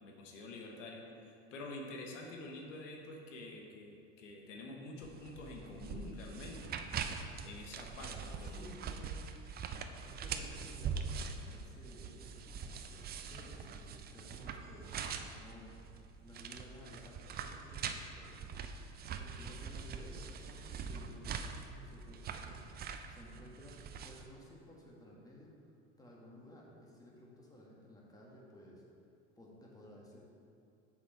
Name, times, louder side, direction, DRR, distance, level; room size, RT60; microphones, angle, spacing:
voice 1, 0.0-6.8 7.4-8.7, left 2 dB, 80° left, 0 dB, 1.0 m, -48 dB
sound 1, 5.0-24.3, right 6 dB, 25° right, 0.4 m, -43 dB
voice 2, 8.4-9.1 10.0-18.5 19.1-25.7 26.0-28.8 29.4-30.2, left 1 dB, 10° left, -4 dB, 1.6 m, -55 dB
6.8 x 5.0 x 4.5 m, 2.5 s
hypercardioid pair, 85°, 37 cm